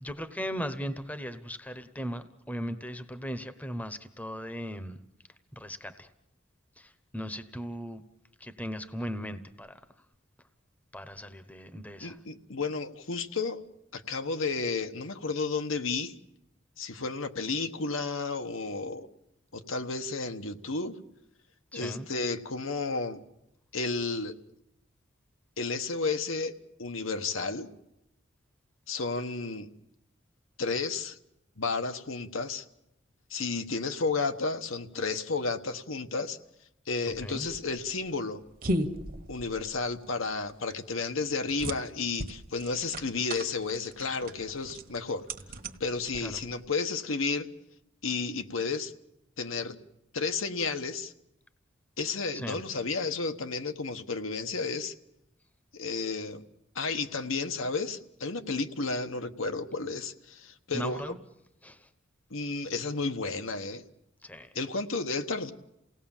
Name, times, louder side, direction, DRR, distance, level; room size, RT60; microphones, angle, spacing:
voice 1, 0.0-5.0 5.5-6.1 6.8-8.0 8.4-9.7 10.9-12.2 21.7-22.0 37.2-37.4 46.2-46.4 52.3-52.6 60.7-61.2 61.6-61.9 64.2-64.5, equal, 10° left, 0.9 m, -38 dB
voice 2, 12.0-13.6 13.9-16.1 16.8-19.1 19.5-21.0 21.7-23.2 23.7-24.3 25.6-26.5 26.8-27.7 28.9-29.7 30.6-31.2 31.6-32.7 33.3-36.4 36.9-38.4 39.3-45.2 45.8-47.5 48.0-48.9 49.4-49.8 50.1-51.1 52.0-54.9 55.7-56.4 56.7-61.0 62.3-63.8 64.5-65.5, left 4 dB, 80° left, 1.3 m, -32 dB
sound 1, 37.1-46.7, equal, 45° right, 1.4 m, -37 dB
29.0 x 18.0 x 7.3 m
head